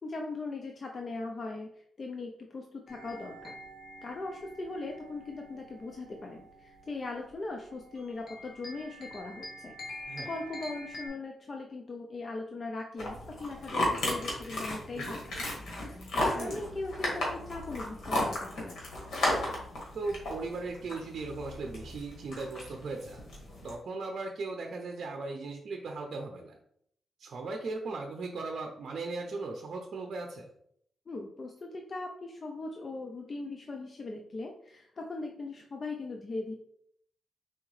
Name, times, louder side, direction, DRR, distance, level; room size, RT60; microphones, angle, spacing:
voice 1, 0.0-3.6 4.0-9.7 10.2-18.8 31.1-36.5, left 3 dB, 35° left, 1 dB, 0.5 m, -39 dB
sound 1, 2.9-11.1, equal, 60° left, 1.3 m, -47 dB
sound 2, 13.0-23.7, left 1 dB, 75° left, 1.8 m, -34 dB
voice 2, 19.9-23.3 23.6-26.6 27.2-30.5, right 3 dB, 60° right, 2 dB, 0.6 m, -38 dB
4.4 x 3.6 x 3.2 m, 0.68 s
cardioid pair, 110°, 0 cm